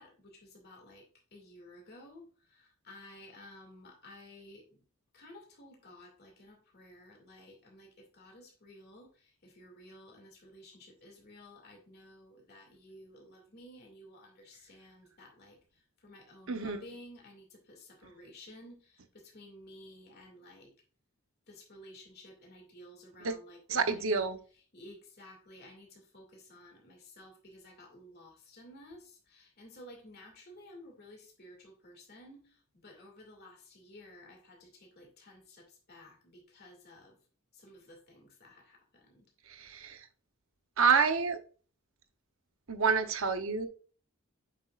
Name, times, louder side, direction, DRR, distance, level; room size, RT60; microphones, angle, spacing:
voice 1, 0.0-4.8 5.1-20.7 21.5-24.3 24.7-37.2 37.5-39.3, left 1 dB, 45° left, 2.3 m, -54 dB
voice 2, 23.7-24.4 39.5-40.0 40.8-41.4 42.7-43.7, right 5 dB, 70° right, 0.8 m, -28 dB
8.2 x 6.0 x 2.4 m
head